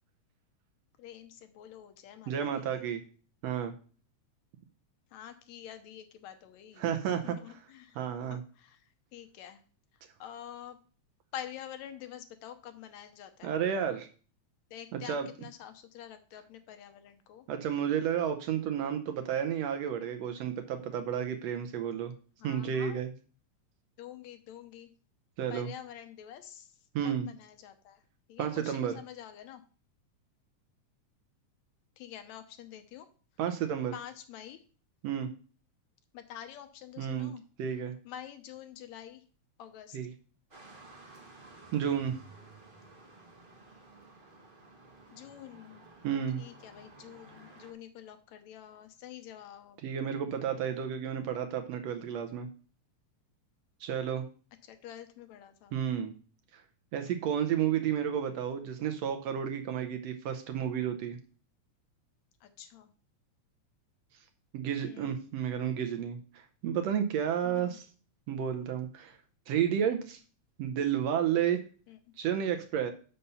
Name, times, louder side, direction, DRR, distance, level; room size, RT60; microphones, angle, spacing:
voice 1, 1.0-3.0 5.1-6.9 7.2-9.6 9.9-10.8 11.3-13.6 14.7-17.5 22.4-23.0 24.0-24.9 25.5-28.0 28.3-29.6 32.0-33.1 33.9-34.6 36.1-37.4 38.1-39.2 39.6-40.0 45.1-45.9 46.4-49.8 54.6-55.8 62.4-62.9 64.8-65.1 67.4-67.8 71.9-72.1, left 10 dB, 75° left, 9 dB, 1.9 m, -47 dB
voice 2, 2.3-3.0 3.4-3.7 6.8-7.3 8.0-8.4 13.4-14.1 14.9-15.3 17.5-22.1 22.4-23.1 25.4-25.7 26.9-27.3 28.4-28.9 33.4-33.9 35.0-35.3 37.0-37.3 37.6-37.9 39.9-40.1 41.7-42.2 46.0-46.4 49.8-52.5 53.8-54.2 55.7-56.1 56.5-56.6 56.9-61.2 64.5-67.8 68.3-69.2 69.5-70.2 70.6-71.6 72.2-72.9, right 9 dB, 75° right, 7 dB, 1.7 m, -31 dB
sound 1, 40.5-47.7, right 2 dB, 50° right, 0.6 m, -54 dB
6.8 x 5.5 x 5.4 m, 0.40 s
omnidirectional pair, 3.4 m